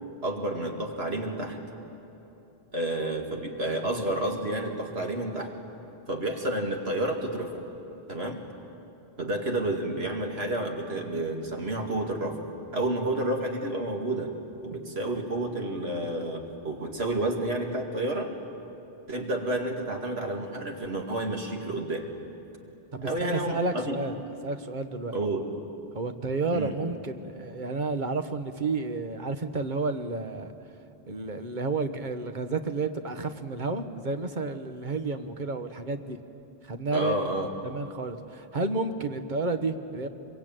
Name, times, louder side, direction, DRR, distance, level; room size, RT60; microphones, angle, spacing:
voice 1, 0.2-1.6 2.7-5.5 6.1-7.6 8.1-8.4 9.2-12.4 12.7-14.3 14.6-18.3 19.1-22.1 23.0-23.9 25.1-25.5 26.5-26.7 36.9-37.5, right 1 dB, 80° right, 2 dB, 2.6 m, -30 dB
voice 2, 22.9-25.2 25.9-30.5 31.1-36.2 36.6-37.3 37.6-40.1, right 3 dB, 50° right, 8 dB, 1.3 m, -31 dB
25.0 x 23.0 x 9.1 m, 3.0 s
omnidirectional pair, 1.0 m